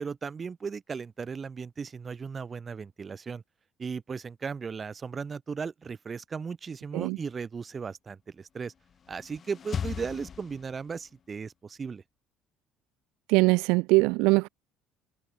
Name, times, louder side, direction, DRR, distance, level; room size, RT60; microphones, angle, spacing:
voice 1, 0.0-3.4 3.8-8.7 9.1-12.0, right 5 dB, 25° right, 2.9 m, -36 dB
sound 1, 8.7-11.1, left 7 dB, 30° left, 5.8 m, -38 dB
voice 2, 13.3-14.5, right 26 dB, 85° right, 0.4 m, -22 dB
cardioid pair, 150°, 0 cm